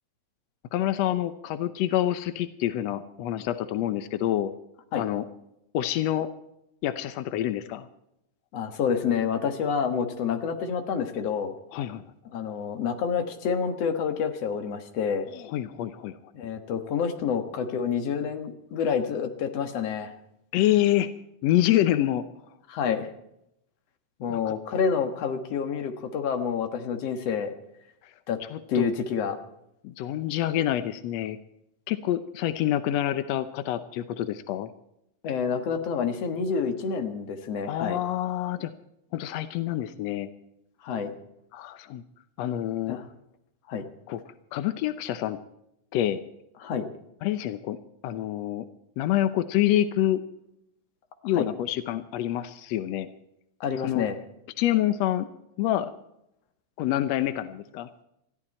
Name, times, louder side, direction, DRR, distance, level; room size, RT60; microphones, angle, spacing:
voice 1, 0.7-4.5 4.9-5.2 5.7-6.3 6.8-7.9 11.7-12.0 15.3-16.2 20.5-21.1 21.4-22.2 24.3-24.5 28.5-28.9 29.8-31.4 31.9-34.7 37.7-38.7 39.1-40.3 41.5-42.0 42.4-43.0 44.1-44.2 44.5-45.4 45.9-46.2 47.2-47.8 48.0-48.7 49.0-50.2 51.2-53.1 53.8-54.0 54.6-55.3 55.6-55.9 56.8-57.9, left 13 dB, 80° left, 11 dB, 1.5 m, -27 dB
voice 2, 8.5-11.5 12.3-15.3 16.3-20.1 22.7-23.1 24.2-27.5 28.3-28.4 28.7-29.4 35.2-38.0 40.8-41.1 42.9-43.0 43.7-43.9 46.6-46.9 51.3-51.5 53.6-54.2, left 6 dB, 55° left, 6 dB, 2.2 m, -28 dB
21.0 x 14.0 x 4.3 m, 0.80 s
omnidirectional pair, 4.0 m